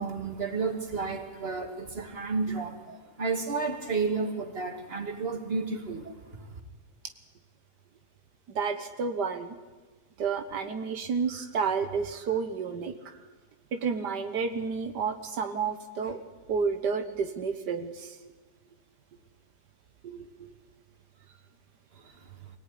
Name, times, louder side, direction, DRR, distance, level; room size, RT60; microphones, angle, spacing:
voice 1, 0.0-2.8 3.2-6.6, right 4 dB, 35° right, 5 dB, 2.7 m, -32 dB
voice 2, 8.5-9.6 10.2-13.2 13.7-16.2 16.5-18.3 20.0-20.5, right 5 dB, 85° right, 7 dB, 1.9 m, -31 dB
25.0 x 18.0 x 10.0 m, 1.3 s
omnidirectional pair, 1.7 m